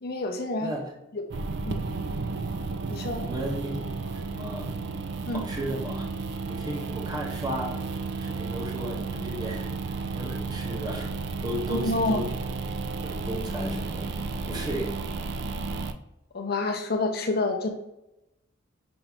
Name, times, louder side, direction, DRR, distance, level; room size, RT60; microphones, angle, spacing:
voice 1, 0.0-0.7 1.1-1.2 1.6-1.8 2.9-3.2 5.3-5.4 11.7-12.3 16.3-17.7, left 2 dB, 50° left, 3 dB, 0.6 m, -28 dB
sound 1, 1.3-15.9, right 4 dB, 55° right, 0.3 m, -33 dB
voice 2, 3.1-3.9 4.2-4.7 5.3-6.0 6.5-7.8 8.2-9.7 10.1-11.1 11.4-12.3 13.0-14.1 14.5-15.0, right 1 dB, 20° right, -1 dB, 0.8 m, -34 dB
5.9 x 2.6 x 3.4 m, 0.89 s
head